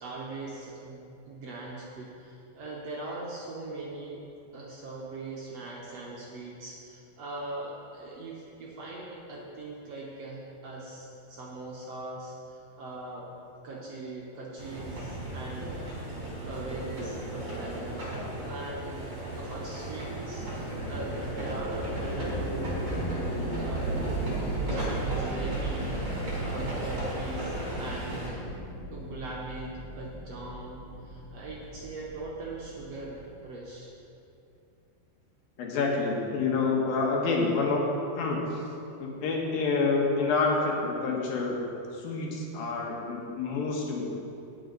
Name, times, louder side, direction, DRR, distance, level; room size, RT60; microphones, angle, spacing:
voice 1, 0.0-4.2 4.5-13.3 13.6-15.8 16.4-18.2 18.4-22.8 23.6-24.2 24.6-28.5 28.9-33.9, right 2 dB, 70° right, -4 dB, 1.6 m, -41 dB
sound 1, 14.6-28.3, right 1 dB, 30° right, 3.0 m, -36 dB
sound 2, 20.3-33.3, right 2 dB, 50° left, 3.5 m, -36 dB
voice 2, 35.6-37.8 38.2-38.7 39.0-41.6 41.9-44.2, left 4 dB, 75° left, -1 dB, 3.1 m, -28 dB
19.0 x 6.3 x 3.9 m, 2.6 s
omnidirectional pair, 4.3 m